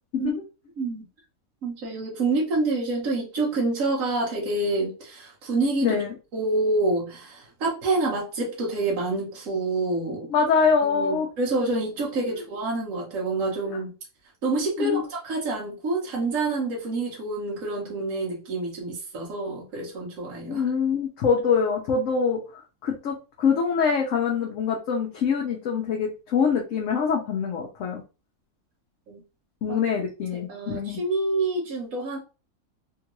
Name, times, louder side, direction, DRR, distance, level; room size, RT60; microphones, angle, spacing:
voice 1, 1.6-6.0 6.3-10.3 10.8-13.9 14.4-20.6 29.1-29.2 29.7-29.8 30.3-32.2, right 2 dB, 65° right, -3 dB, 1.4 m, -27 dB
voice 2, 5.8-6.1 10.3-11.3 12.3-12.4 14.8-15.0 20.4-28.0 29.6-31.0, left 6 dB, 65° left, 0 dB, 1.0 m, -24 dB
3.6 x 2.5 x 3.0 m, 0.31 s
omnidirectional pair, 1.5 m